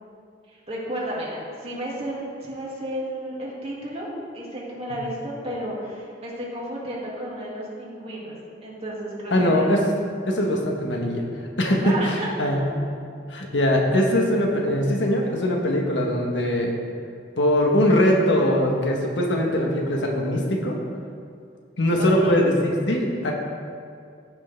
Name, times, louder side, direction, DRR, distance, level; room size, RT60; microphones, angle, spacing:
voice 1, 0.7-4.1 4.3-8.4 8.6-9.7 11.8-12.3 12.6-12.7 22.0-22.4, right 1 dB, 35° right, -6 dB, 2.4 m, -32 dB
voice 2, 9.3-9.8 10.2-11.2 11.6-12.6 13.3-16.7 17.4-20.8 21.8-23.3, left 1 dB, 90° left, 0 dB, 1.4 m, -21 dB
15.0 x 6.2 x 3.5 m, 2.3 s
head